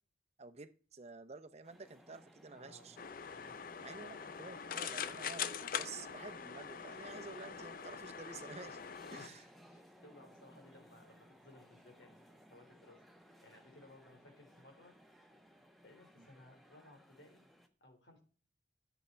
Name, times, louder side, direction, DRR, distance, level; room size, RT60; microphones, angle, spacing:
voice 1, 0.4-3.0 3.8-8.8 9.1-9.4 16.2-16.3, right 4 dB, 35° right, 10 dB, 0.7 m, -51 dB
sound 1, 1.6-17.7, equal, ahead, 1.1 m, -61 dB
voice 2, 2.5-4.1 9.1-13.0 13.4-14.9 15.8-17.4 17.8-18.2, left 2 dB, 75° left, 2 dB, 3.7 m, -60 dB
sound 2, 3.0-9.3, left 7 dB, 50° left, 0.5 m, -43 dB
11.0 x 8.0 x 4.4 m, 0.40 s
head